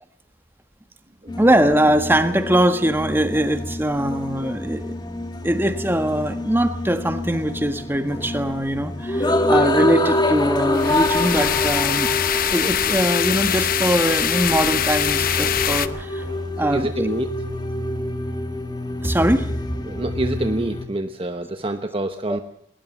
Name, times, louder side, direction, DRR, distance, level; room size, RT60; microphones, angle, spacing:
sound 1, 1.3-20.9, left 1 dB, 25° left, 1.6 m, -26 dB
voice 1, 1.4-4.9 5.4-12.1 12.5-16.3 16.6-17.1 19.0-19.5 22.3-22.4, right 1 dB, 10° right, 8 dB, 1.6 m, -21 dB
sound 2, 10.7-15.9, left 10 dB, 50° left, 0.9 m, -23 dB
Scratching (performance technique), 10.8-13.1 14.0-18.4, right 1 dB, 85° right, 7.8 m, -39 dB
voice 2, 16.6-17.3 19.9-22.4, right 1 dB, 30° right, 8 dB, 1.0 m, -26 dB
21.0 x 19.0 x 7.4 m, 0.70 s
head